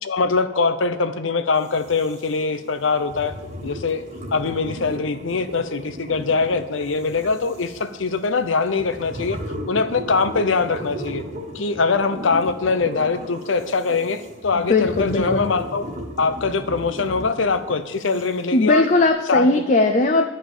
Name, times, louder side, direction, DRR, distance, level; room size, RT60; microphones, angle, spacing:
voice 1, 0.0-3.3 3.6-4.0 4.3-9.4 9.7-11.2 11.5-15.8 16.2-18.9 19.3-19.6, left 4 dB, 80° left, 11 dB, 0.8 m, -22 dB
sound 1, 1.5-19.1, equal, 40° right, 1.6 m, -36 dB
voice 2, 14.5-15.5 18.5-20.2, left 2 dB, 40° left, 4 dB, 0.6 m, -18 dB
11.5 x 5.6 x 6.7 m, 1.2 s
head